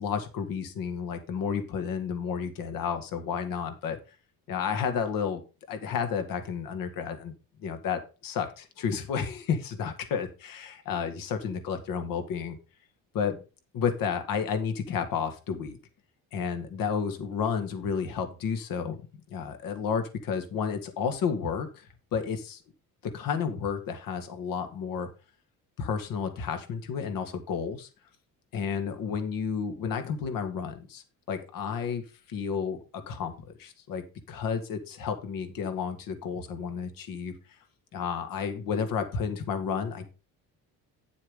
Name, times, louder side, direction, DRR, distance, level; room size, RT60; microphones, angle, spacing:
voice 1, 0.0-4.0 4.5-5.4 5.7-7.3 7.6-12.6 13.1-13.4 13.7-15.8 16.3-19.0 19.3-22.6 23.0-25.1 25.8-27.9 28.5-32.0 32.3-37.3 37.9-40.1, left 6 dB, 70° left, 7 dB, 2.0 m, -31 dB
10.0 x 7.2 x 3.7 m, 0.31 s
cardioid pair, 130°, 35 cm